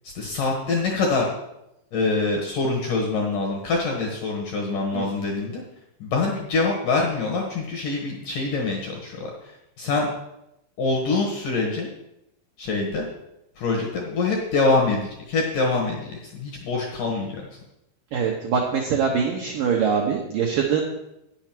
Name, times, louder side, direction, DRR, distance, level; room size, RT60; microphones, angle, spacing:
voice 1, 0.2-1.3 1.9-5.6 6.0-10.1 10.8-11.9 12.6-13.1 13.6-17.5, left 3 dB, 65° left, 0 dB, 2.2 m, -25 dB
voice 2, 18.1-20.8, right 6 dB, 80° right, 0 dB, 2.0 m, -23 dB
9.5 x 7.1 x 6.0 m, 0.86 s
omnidirectional pair, 5.3 m